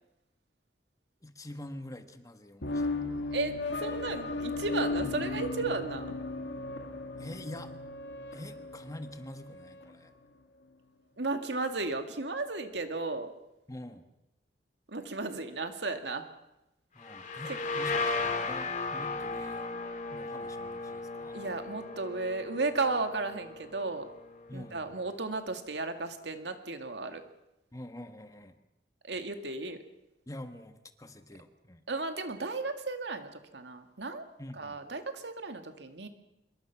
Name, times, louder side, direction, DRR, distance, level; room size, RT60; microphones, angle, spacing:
voice 1, 1.2-3.4 7.2-7.7 8.3-10.1 13.7-14.1 16.9-19.7 20.1-21.4 24.5-25.0 27.7-28.6 30.3-31.8 34.4-34.8, left 1 dB, 20° left, 8 dB, 1.5 m, -46 dB
sound 1, 2.6-9.9, left 3 dB, 90° left, 2.3 m, -36 dB
voice 2, 3.3-6.2 11.2-13.3 14.9-16.3 21.3-24.1 24.5-27.2 29.0-29.8 31.9-34.3 34.5-36.1, right 3 dB, 80° right, 7 dB, 2.2 m, -34 dB
sound 2, 17.0-24.6, left 3 dB, 45° left, 2.9 m, -36 dB
26.0 x 22.5 x 6.0 m, 0.89 s
head